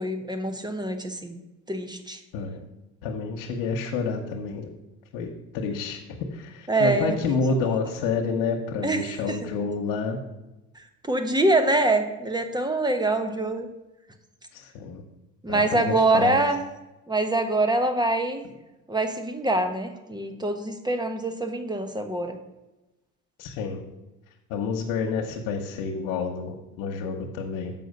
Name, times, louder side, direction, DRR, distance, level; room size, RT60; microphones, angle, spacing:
voice 1, 0.0-1.4 1.7-2.2 6.7-7.2 8.8-9.5 11.1-13.7 15.4-16.6 17.1-18.4 18.9-22.4, right 2 dB, 15° right, 7 dB, 1.1 m, -24 dB
voice 2, 3.0-4.7 5.1-5.3 5.5-10.2 14.5-15.0 15.5-16.4 23.4-23.8 24.5-27.7, left 4 dB, 90° left, 0 dB, 1.0 m, -29 dB
6.9 x 5.5 x 6.5 m, 1.0 s
supercardioid pair, 85°, 32 cm